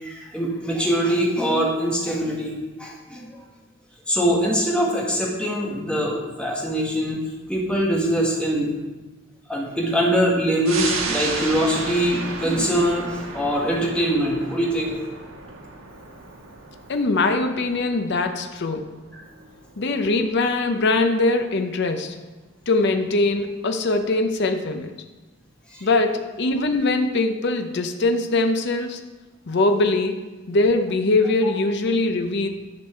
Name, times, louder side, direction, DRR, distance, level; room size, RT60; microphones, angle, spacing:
voice 1, 0.0-3.4 4.1-7.2 7.5-8.7 9.5-15.0 19.1-19.2 25.7-25.9, equal, 5° left, -3 dB, 1.7 m, -23 dB
sound 1, 10.6-21.6 22.0-22.1, right 3 dB, 85° right, 1.3 m, -34 dB
voice 2, 16.9-18.9 19.8-22.1 22.7-24.9 25.8-29.0 29.5-30.2 30.5-32.5, left 2 dB, 55° left, 6 dB, 0.7 m, -22 dB
10.5 x 6.0 x 4.5 m, 1.2 s
head